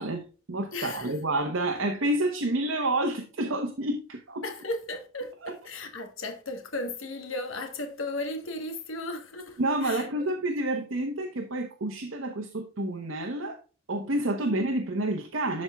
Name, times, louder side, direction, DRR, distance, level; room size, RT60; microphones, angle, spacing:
voice 1, 0.0-4.4 5.4-5.6 9.6-13.6 13.9-15.6, right 1 dB, 65° right, 1.0 m, -29 dB
voice 2, 0.7-1.1 4.4-10.3 14.4-14.6, left 2 dB, 75° left, 1.4 m, -35 dB
13.0 x 4.3 x 2.3 m
head